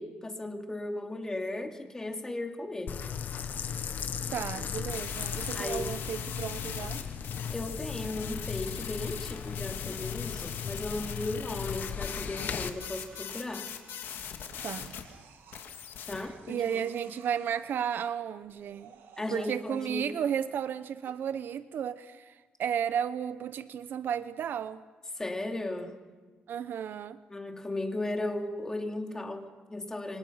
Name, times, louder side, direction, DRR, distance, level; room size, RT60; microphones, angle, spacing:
voice 1, 0.0-3.0 5.5-5.9 7.5-13.7 16.1-16.6 19.2-20.1 25.2-26.0 27.3-30.2, left 2 dB, 15° left, 2.8 m, -36 dB
sound 1, 2.9-12.7, left 7 dB, 50° left, 1.5 m, -37 dB
voice 2, 4.3-7.0 14.6-14.9 16.5-18.9 19.3-22.3 22.6-24.8 26.5-27.2, right 8 dB, 65° right, 0.9 m, -33 dB
sound 2, 4.9-15.0 15.5-16.3, left 8 dB, 70° left, 2.8 m, -41 dB
sound 3, 12.3-14.5 14.8-15.7 16.1-17.8 18.4-20.4 21.0-21.1, right 7 dB, 85° right, 2.9 m, -57 dB
27.5 x 25.5 x 5.9 m
cardioid pair, 115°, 4 cm